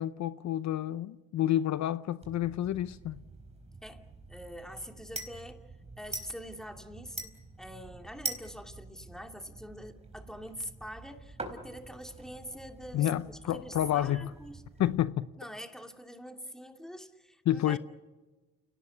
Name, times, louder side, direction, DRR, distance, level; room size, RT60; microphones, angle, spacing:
voice 1, 0.0-3.2 12.9-14.3 14.8-15.3 17.5-17.8, left 12 dB, 65° left, 0.7 m, -29 dB
sound 1, 2.2-15.0, right 2 dB, 20° right, 4.2 m, -45 dB
voice 2, 3.8-5.6 6.0-14.6 15.4-17.8, equal, ahead, 2.7 m, -45 dB
29.5 x 18.5 x 8.4 m
cardioid pair, 90°, 30 cm